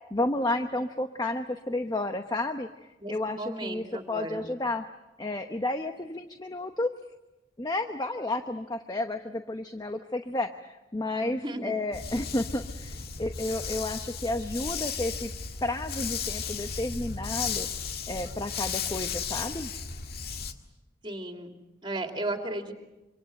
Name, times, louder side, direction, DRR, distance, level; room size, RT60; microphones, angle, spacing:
voice 1, 0.1-2.7 3.1-4.8 5.2-6.9 7.6-15.3 15.6-17.7 18.1-19.7, left 2 dB, 20° left, 7 dB, 0.9 m, -31 dB
voice 2, 3.0-4.5 11.2-11.7 21.0-21.5 21.8-22.7, right 2 dB, 25° right, 4 dB, 3.0 m, -35 dB
Dog, 11.9-20.5, left 6 dB, 55° left, 1.8 m, -35 dB
26.5 x 25.5 x 7.8 m, 1.0 s
head